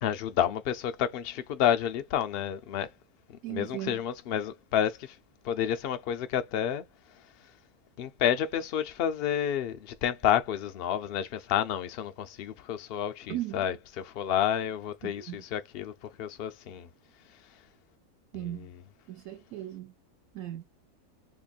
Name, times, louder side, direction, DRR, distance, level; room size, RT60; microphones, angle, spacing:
voice 1, 0.0-2.9 3.3-5.2 5.4-6.8 8.0-15.9 16.2-16.9 18.3-18.7, left 9 dB, 65° left, 0.6 m, -30 dB
voice 2, 3.4-4.0 13.3-13.6 15.0-15.4 18.3-18.7 19.1-19.9 20.3-20.6, right 14 dB, 75° right, 0.9 m, -37 dB
2.9 x 2.5 x 4.0 m
omnidirectional pair, 1.6 m